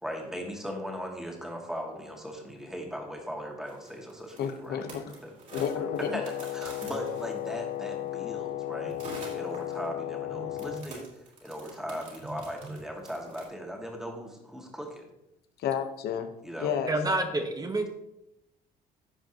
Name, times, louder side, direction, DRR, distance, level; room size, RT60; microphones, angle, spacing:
voice 1, 0.0-4.8 5.2-5.3 5.8-9.0 9.3-15.1 16.4-16.7, equal, 5° right, 0 dB, 2.0 m, -38 dB
sound 1, 3.7-7.8 8.9-9.9 10.6-13.5, right 2 dB, 50° right, 3.7 m, -46 dB
voice 2, 4.4-5.2 5.5-6.1 15.6-16.3 16.6-16.9, left 8 dB, 70° left, 8 dB, 1.0 m, -31 dB
Wind instrument woodwind instrument, 5.5-10.9, left 13 dB, 50° left, 0.5 m, -35 dB
Telephone, 8.8-9.0 10.3-11.0 12.2-12.9, right 1 dB, 70° right, 2.0 m, -44 dB
voice 3, 16.9-17.9, right 2 dB, 20° right, 6 dB, 1.1 m, -28 dB
15.5 x 5.2 x 2.9 m, 0.85 s
cardioid pair, 110°, 17 cm